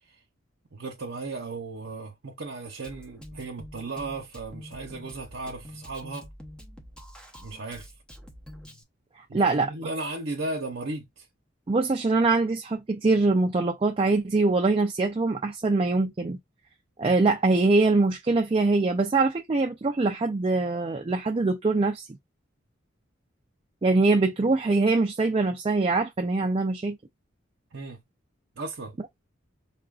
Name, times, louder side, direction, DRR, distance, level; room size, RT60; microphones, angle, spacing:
voice 1, 0.7-6.3 7.4-7.9 9.3-11.3 27.7-28.0 28.6-28.9, right 2 dB, 70° right, 0.8 m, -35 dB
Drum kit, 2.8-8.8, equal, 5° left, 0.8 m, -46 dB
voice 2, 9.3-9.7 11.7-16.4 17.0-22.1 23.8-27.0, right 3 dB, 30° right, 0.4 m, -23 dB
5.5 x 2.5 x 2.3 m
head